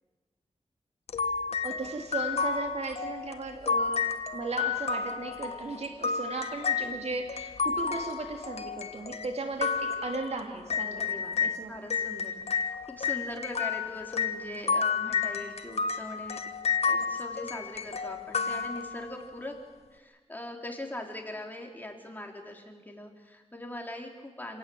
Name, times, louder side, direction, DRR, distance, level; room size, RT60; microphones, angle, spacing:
sound 1, 1.1-11.6 11.9-19.3, left 5 dB, 65° left, 1.3 m, -31 dB
voice 1, 1.6-4.1 4.3-11.8, right 3 dB, 70° right, 3 dB, 3.1 m, -36 dB
voice 2, 11.0-16.4 16.9-19.6 19.9-24.6, left 1 dB, 15° left, 1 dB, 3.7 m, -41 dB
27.5 x 17.5 x 7.9 m, 1.3 s
wide cardioid pair, 90°, 12 cm